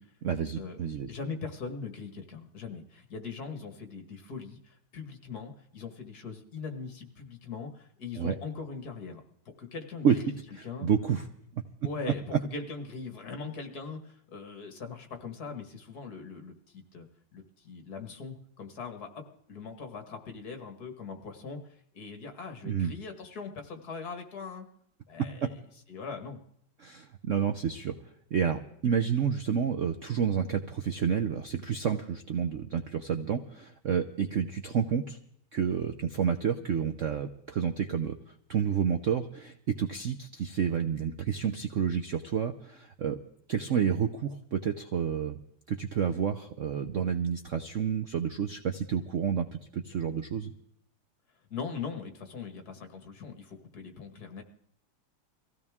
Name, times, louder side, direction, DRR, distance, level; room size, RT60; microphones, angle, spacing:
voice 1, 0.2-1.1 8.2-8.4 10.0-10.2 10.8-11.2 11.5-11.6 22.6-22.9 25.2-25.5 26.8-27.9 28.3-35.2 35.5-38.2 38.5-43.2 43.5-45.4 45.7-50.5, right 7 dB, 85° right, 7 dB, 0.6 m, -29 dB
voice 2, 1.1-9.2 9.6-10.4 10.6-10.9 11.8-17.1 17.3-24.7 25.1-25.6 25.9-26.4 51.5-54.4, left 5 dB, 50° left, 5 dB, 2.0 m, -41 dB
23.0 x 16.0 x 3.6 m, 0.69 s
omnidirectional pair, 2.3 m